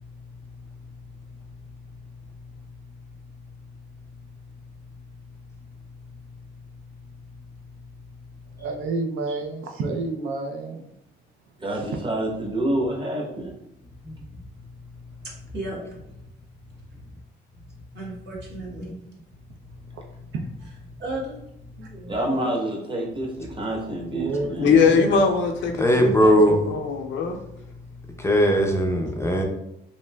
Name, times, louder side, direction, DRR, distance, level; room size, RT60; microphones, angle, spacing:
voice 1, 8.6-10.9 19.9-20.0 20.3-20.5 24.1-25.2 29.2-29.3, right 3 dB, 80° right, 4 dB, 0.4 m, -29 dB
voice 2, 11.6-13.5 22.1-24.7, right 1 dB, 25° right, -2 dB, 0.9 m, -27 dB
voice 3, 15.2-15.8 17.9-19.0 21.0-21.4 21.8-22.6, right 2 dB, 60° right, -4 dB, 1.2 m, -35 dB
voice 4, 24.6-27.4, left 5 dB, 70° left, 3 dB, 0.5 m, -21 dB
voice 5, 25.8-26.6 28.2-29.4, equal, 15° left, 1 dB, 0.4 m, -19 dB
3.0 x 2.6 x 2.2 m, 0.81 s
cardioid pair, 90°, 20 cm